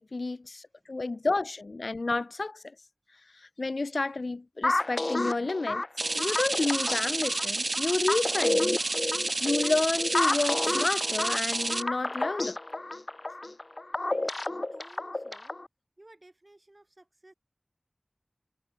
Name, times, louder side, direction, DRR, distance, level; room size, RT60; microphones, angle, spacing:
voice 1, 0.0-2.7 3.6-5.8 6.1-8.7 9.4-12.6, left 3 dB, 80° left, 0.4 m, -30 dB
sound 1, 4.6-15.7, left 2 dB, 50° left, 1.0 m, -31 dB
sound 2, 6.0-11.8, right 2 dB, 65° right, 1.4 m, -30 dB
voice 2, 14.1-15.6 16.0-17.3, right 1 dB, 40° right, 7.6 m, -56 dB
wide cardioid pair, 55°, 0 cm